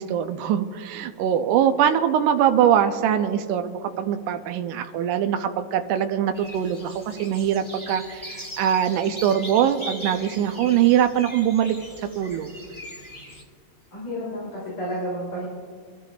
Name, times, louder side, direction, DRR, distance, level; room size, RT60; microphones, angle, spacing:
voice 1, 0.0-11.8 12.2-12.5, right 9 dB, 90° right, 8 dB, 2.1 m, -22 dB
sound 1, 6.3-13.4, equal, 15° left, 1.0 m, -40 dB
voice 2, 13.9-15.5, equal, 55° left, -8 dB, 4.5 m, -31 dB
25.5 x 13.5 x 2.5 m, 2.1 s
omnidirectional pair, 3.6 m